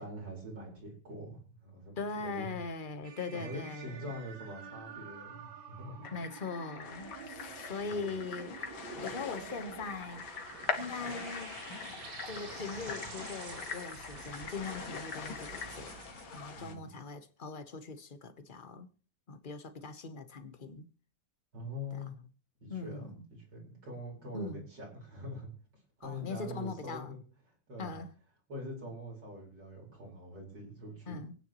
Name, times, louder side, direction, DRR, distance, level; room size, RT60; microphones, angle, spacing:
voice 1, 0.0-2.5 3.3-6.2 7.4-7.5 7.9-8.1 16.5-16.9 21.5-22.2 22.6-25.5 26.0-27.2 27.7-28.0 28.5-31.2, left 1 dB, 60° right, 5.3 m, -44 dB
voice 2, 2.0-4.1 6.1-10.3 10.8-11.6 12.2-15.9 16.3-18.9 19.3-20.9 21.9-22.0 22.7-23.3 24.3-24.7 26.0-27.1 27.8-28.1 31.1-31.3, left 4 dB, 35° left, 0.9 m, -41 dB
sound 1, 3.0-16.8, right 6 dB, 80° right, 2.1 m, -49 dB
sound 2, 6.0-15.8, left 5 dB, 60° left, 2.0 m, -43 dB
sound 3, 6.8-16.7, left 5 dB, 85° left, 2.3 m, -47 dB
26.5 x 9.5 x 3.0 m
omnidirectional pair, 2.1 m